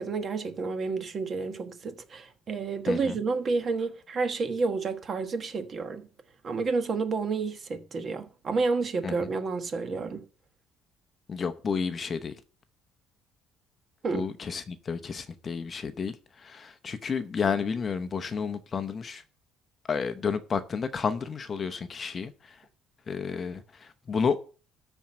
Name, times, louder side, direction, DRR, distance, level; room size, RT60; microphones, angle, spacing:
voice 1, 0.0-6.1 6.4-10.2 14.0-14.3, right 4 dB, 30° right, 1.3 m, -30 dB
voice 2, 11.3-12.3 14.1-19.2 19.9-22.6 23.1-24.4, left 6 dB, 30° left, 0.8 m, -31 dB
13.0 x 4.5 x 7.4 m
cardioid pair, 150°, 0 cm